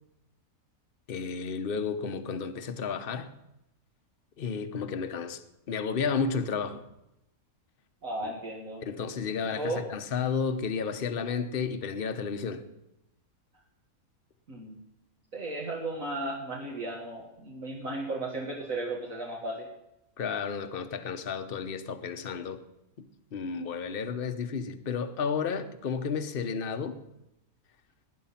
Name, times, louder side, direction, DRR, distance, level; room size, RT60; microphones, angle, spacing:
voice 1, 1.1-3.3 4.4-5.4 5.7-6.8 8.9-12.6 20.2-22.6 23.0-27.0, left 5 dB, 40° left, 1.1 m, -32 dB
voice 2, 8.0-8.8 9.5-9.9 14.5-14.8 15.3-19.7, right 2 dB, 65° right, 2.3 m, -35 dB
19.0 x 10.0 x 5.8 m
omnidirectional pair, 1.6 m